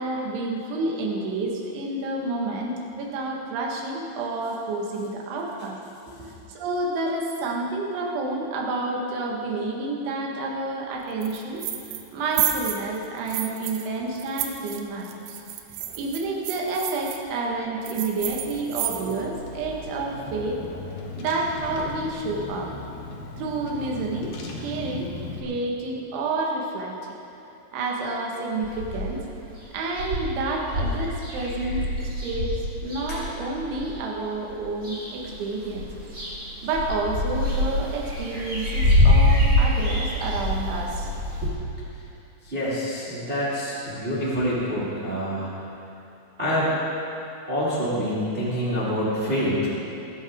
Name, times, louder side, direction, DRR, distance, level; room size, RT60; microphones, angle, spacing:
voice 1, 0.0-5.8 6.5-11.6 12.1-15.4 16.0-20.6 21.1-22.7 23.4-24.3 24.6-27.0 27.7-29.2 29.7-35.9 36.6-41.1 41.4-41.5, right 2 dB, 70° right, -1 dB, 3.8 m, -29 dB
sound 1, 11.2-12.1 12.3-13.9 14.2-17.2 17.9-19.3, right 12 dB, 90° right, 3.5 m, -31 dB
Car / Engine, 18.2-25.4, left 3 dB, 90° left, 1.7 m, -38 dB
sound 2, 28.6-29.2 29.6-29.7 29.9-34.0 34.5-35.3 35.6-41.5, left 1 dB, 20° right, 2.4 m, -24 dB
voice 2, 42.4-45.5 46.4-46.7 47.5-49.7, equal, 45° right, -8 dB, 0.7 m, -26 dB
20.5 x 12.0 x 3.7 m, 2.8 s
omnidirectional pair, 5.8 m